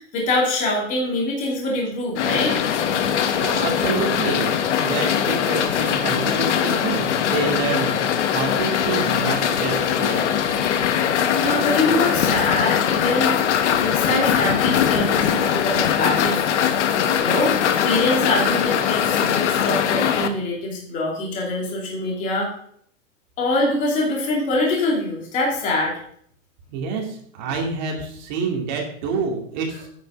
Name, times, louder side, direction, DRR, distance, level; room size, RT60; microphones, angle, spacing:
voice 1, 0.0-2.6 11.0-13.5 13.8-16.5 17.2-22.5 23.4-26.0, left 2 dB, 20° left, -2 dB, 2.7 m, -24 dB
sound 1, 2.2-20.3, left 8 dB, 65° left, 1.3 m, -21 dB
voice 2, 3.3-10.3 26.7-29.9, right 5 dB, 35° right, 1 dB, 2.4 m, -28 dB
9.4 x 6.0 x 6.4 m, 0.64 s
supercardioid pair, 175°, 38 cm